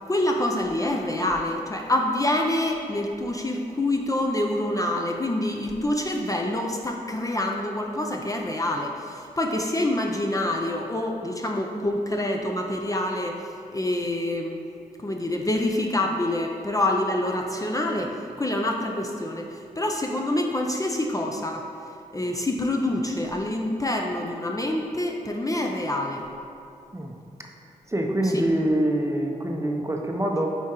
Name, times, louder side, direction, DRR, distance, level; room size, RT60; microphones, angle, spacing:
voice 1, 0.1-14.6 15.0-21.6 22.1-26.2 28.2-28.4, left 1 dB, 20° left, 1 dB, 0.5 m, -26 dB
voice 2, 27.9-30.5, right 1 dB, 20° right, 1 dB, 0.6 m, -25 dB
9.3 x 3.5 x 3.0 m, 2.6 s
cardioid pair, 60°, 16 cm